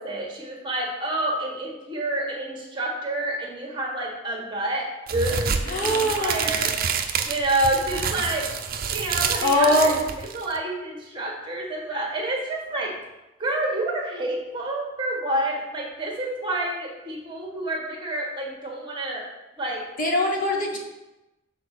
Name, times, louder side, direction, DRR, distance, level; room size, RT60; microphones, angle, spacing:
voice 1, 0.0-6.8 7.2-8.5 8.9-12.9 13.4-19.3 19.6-19.9, right 1 dB, 25° right, -1 dB, 1.5 m, -28 dB
sound 1, 5.1-10.6, right 6 dB, 45° right, 0.6 m, -28 dB
voice 2, 5.7-6.5 9.4-10.0 20.0-20.8, left 1 dB, 40° left, 0 dB, 1.0 m, -22 dB
6.6 x 4.2 x 6.5 m, 1.0 s
head